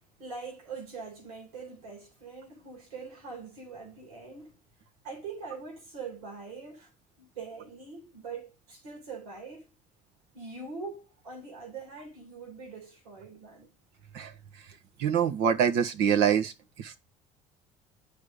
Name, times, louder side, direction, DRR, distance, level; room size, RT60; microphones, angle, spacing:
voice 1, 0.2-4.6 5.0-6.9 7.2-9.7 10.3-13.7, right 4 dB, 90° right, 3.0 m, -43 dB
voice 2, 15.0-17.0, right 8 dB, 70° right, 1.3 m, -25 dB
9.5 x 5.3 x 5.2 m
hypercardioid pair, 70°, 18 cm